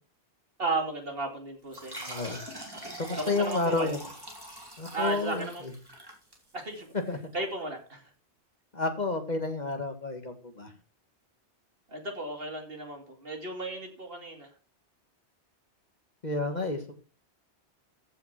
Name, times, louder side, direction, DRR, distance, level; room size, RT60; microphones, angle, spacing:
voice 1, 0.6-2.2 2.7-2.8 3.2-3.9 4.9-5.6 6.5-6.9 7.3-8.1 11.9-14.5, right 2 dB, 55° right, 3 dB, 2.8 m, -34 dB
sound 1, 1.7-6.9, right 1 dB, 20° right, 3.5 m, -43 dB
voice 2, 2.1-2.4 3.0-4.0 4.8-5.7 7.1-7.2 8.7-10.7 16.2-17.0, left 3 dB, 40° left, 6 dB, 1.8 m, -30 dB
14.5 x 5.7 x 5.9 m, 0.37 s
omnidirectional pair, 1.1 m